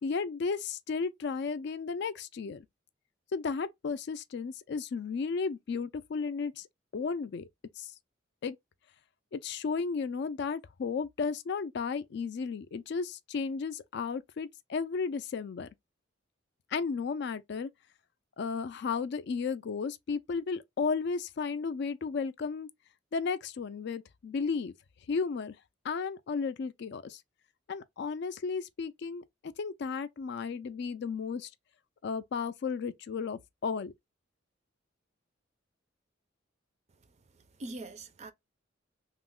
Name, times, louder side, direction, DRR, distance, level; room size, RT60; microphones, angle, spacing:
voice 1, 0.0-2.7 3.3-6.7 6.9-7.5 7.8-7.9 8.4-8.6 9.3-15.7 16.7-17.7 18.4-22.7 23.1-24.7 25.1-25.6 25.8-27.2 27.7-29.2 29.6-31.5 32.0-33.9, left 5 dB, 60° left, 0.3 m, -34 dB
voice 2, 36.9-38.3, right 2 dB, 35° right, 0.4 m, -45 dB
3.0 x 2.0 x 3.6 m
head